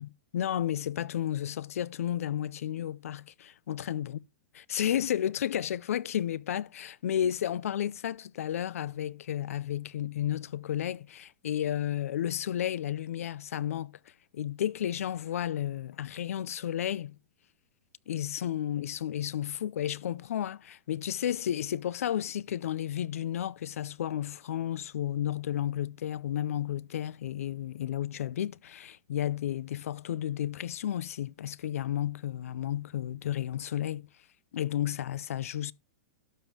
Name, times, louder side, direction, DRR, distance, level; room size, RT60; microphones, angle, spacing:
voice 1, 0.0-4.2 4.5-14.0 14.3-17.2 18.1-34.1 34.5-35.7, left 11 dB, 90° left, 0.4 m, -32 dB
12.5 x 5.5 x 2.9 m
supercardioid pair, 170°, 8 cm